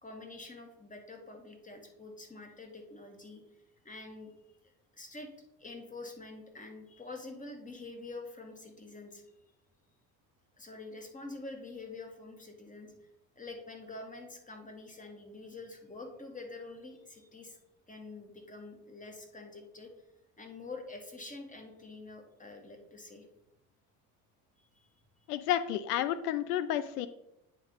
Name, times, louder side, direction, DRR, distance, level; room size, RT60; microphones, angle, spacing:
voice 1, 0.0-3.4 3.8-4.3 4.6-5.3 5.6-9.2 10.6-13.1 13.4-17.6 17.9-19.9 20.4-23.3 24.6-24.9, left 3 dB, 15° left, 3 dB, 2.0 m, -46 dB
voice 2, 25.3-27.1, left 11 dB, 85° left, 14 dB, 0.6 m, -31 dB
9.0 x 3.7 x 5.4 m, 0.86 s
hypercardioid pair, 80°, 45 cm